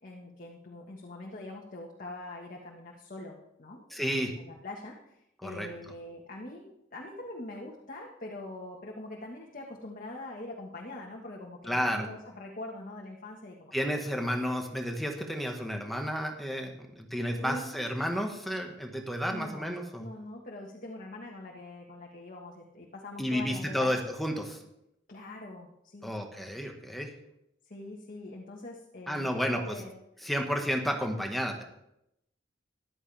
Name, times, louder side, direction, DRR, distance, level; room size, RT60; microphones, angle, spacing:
voice 1, 0.0-13.9 14.6-14.7 17.4-17.9 19.3-24.0 25.1-26.2 27.6-30.0, left 2 dB, 45° left, -1 dB, 1.6 m, -43 dB
voice 2, 3.9-4.3 5.4-5.7 11.7-12.1 13.7-20.0 23.2-24.6 26.0-27.1 29.1-29.6 30.2-31.6, equal, ahead, 2 dB, 1.6 m, -31 dB
14.0 x 12.0 x 3.5 m, 0.82 s
head